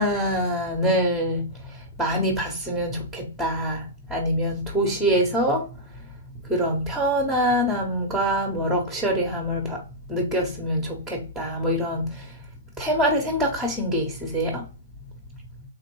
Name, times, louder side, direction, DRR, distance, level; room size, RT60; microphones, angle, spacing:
voice 1, 0.0-5.6 6.5-9.8 10.1-12.3 12.8-14.6, equal, ahead, 0.9 m, -25 dB
3.7 x 2.5 x 2.9 m
hypercardioid pair, 135°, 0 cm